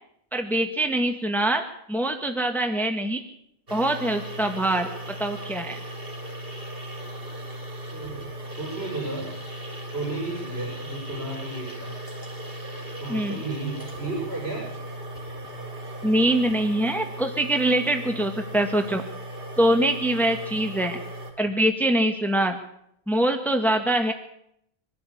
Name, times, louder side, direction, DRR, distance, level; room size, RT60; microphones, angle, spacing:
voice 1, 0.3-1.6 1.9-3.2 3.7-4.9 5.2-5.8 13.1-13.4 16.0-19.0 19.6-21.0 21.4-22.6 23.1-24.1, right 1 dB, ahead, 5 dB, 1.7 m, -23 dB
sound 1, 3.7-21.3, right 1 dB, 65° right, 4.2 m, -37 dB
voice 2, 7.9-8.2 8.6-9.3 9.9-11.9 13.0-14.6, right 2 dB, 80° right, -1 dB, 6.6 m, -33 dB
23.5 x 13.0 x 8.6 m, 0.75 s
omnidirectional pair, 1.0 m